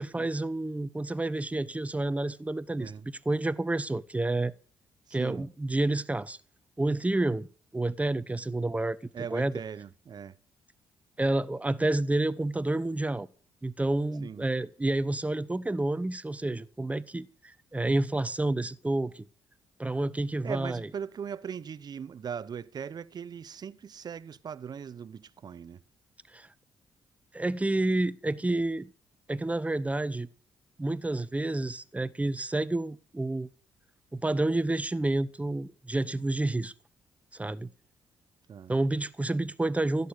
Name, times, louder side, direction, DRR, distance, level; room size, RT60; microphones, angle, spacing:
voice 1, 0.0-4.5 5.1-6.4 6.8-7.5 7.7-9.0 9.3-9.5 11.2-13.3 13.6-19.3 19.8-20.9 26.3-26.5 27.3-28.9 29.3-30.3 30.8-33.5 34.1-36.7 37.3-37.7 38.7-40.1, right 2 dB, 15° right, 0.8 m, -29 dB
voice 2, 5.1-5.5 9.1-10.4 14.2-14.5 20.4-25.8 38.5-38.7, right 7 dB, 50° right, 0.7 m, -39 dB
16.0 x 6.8 x 8.1 m
supercardioid pair, 60°, 9 cm